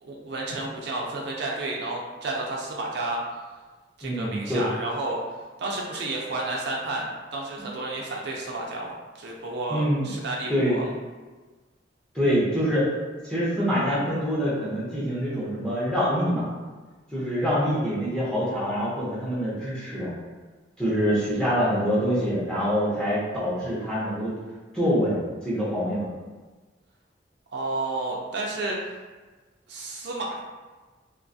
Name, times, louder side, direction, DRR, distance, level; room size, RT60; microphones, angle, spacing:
voice 1, 0.0-3.2 4.0-5.2 5.6-10.8 27.5-28.8 29.7-30.4, right 2 dB, 65° right, -2 dB, 0.4 m, -31 dB
voice 2, 4.0-4.6 7.6-7.7 9.7-10.1 10.5-10.8 12.1-12.9 13.2-16.5 17.1-20.1 20.8-24.3 24.7-26.1, equal, 5° left, -9 dB, 0.7 m, -25 dB
2.4 x 2.3 x 2.6 m, 1.3 s
head